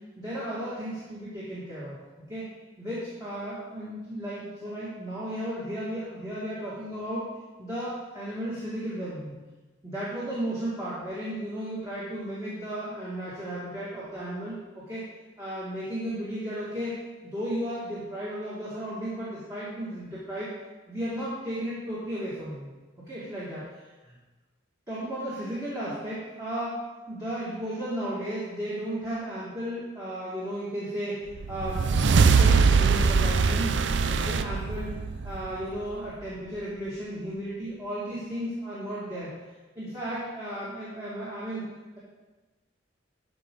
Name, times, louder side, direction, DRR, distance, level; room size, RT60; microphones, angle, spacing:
voice 1, 0.2-2.0 2.3-2.5 2.8-7.3 7.6-9.3 9.8-15.0 15.4-20.5 20.9-22.7 23.0-23.6 24.1-24.2 24.9-26.8 27.1-33.7 34.1-34.9 35.2-39.3 39.8-41.6, right 1 dB, 15° right, -10 dB, 2.0 m, -34 dB
sound 1, 31.4-35.9, right 5 dB, 65° right, 0.4 m, -22 dB
13.0 x 5.1 x 3.9 m, 1.2 s
head